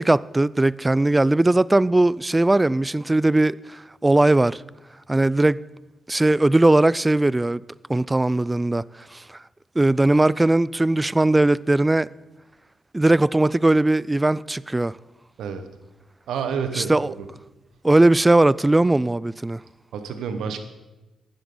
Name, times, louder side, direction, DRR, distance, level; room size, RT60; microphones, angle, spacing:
voice 1, 0.0-4.6 5.1-5.6 6.1-7.6 7.9-8.8 9.1-9.2 9.8-12.1 12.9-15.0 16.8-17.1 17.8-19.6, right 2 dB, 20° right, 0.3 m, -19 dB
voice 2, 16.3-17.3 19.9-20.6, right 6 dB, 80° right, 1.2 m, -29 dB
15.5 x 11.0 x 4.0 m
supercardioid pair, 50°, 0 cm